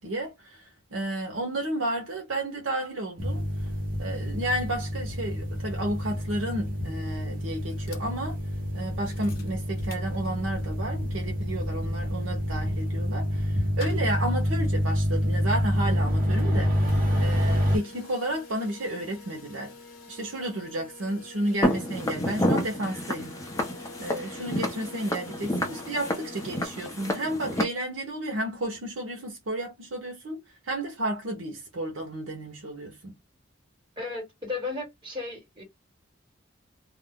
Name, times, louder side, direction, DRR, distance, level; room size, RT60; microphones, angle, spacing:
voice 1, 0.0-3.7 4.0-8.4 8.7-16.7 17.2-19.7 20.1-23.4 24.0-33.2, right 1 dB, 75° right, 0.7 m, -32 dB
sound 1, 3.2-17.8, equal, 45° right, 1.0 m, -27 dB
sound 2, 7.7-10.7 11.1-11.2 11.3-26.7, left 3 dB, 45° left, 0.9 m, -48 dB
Walk footsteps, 21.6-27.6, left 1 dB, 15° left, 0.6 m, -29 dB
voice 2, 34.0-35.6, left 3 dB, 25° right, 1.4 m, -34 dB
2.4 x 2.1 x 3.5 m
head